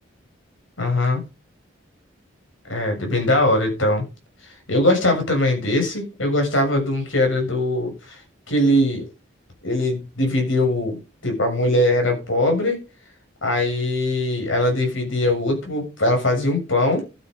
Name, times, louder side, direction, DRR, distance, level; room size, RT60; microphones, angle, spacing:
voice 1, 0.8-1.2 2.7-4.0 4.4-8.2 8.5-9.0 9.6-12.8 13.4-17.0, left 1 dB, 85° left, 7.2 m, -21 dB
12.5 x 8.2 x 5.5 m
head